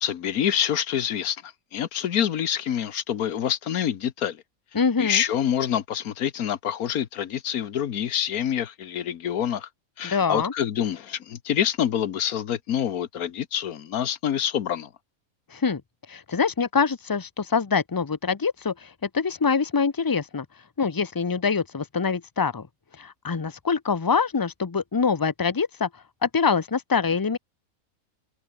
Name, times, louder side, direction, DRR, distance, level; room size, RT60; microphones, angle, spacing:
voice 1, 0.0-4.4 5.0-9.7 10.0-14.9, left 9 dB, 90° left, 1.5 m, -26 dB
voice 2, 4.7-5.2 10.0-10.5 15.5-15.8 16.1-20.5 20.8-22.7 23.0-25.9 26.2-27.4, left 5 dB, 30° left, 0.4 m, -24 dB
omnidirectional pair, 1.5 m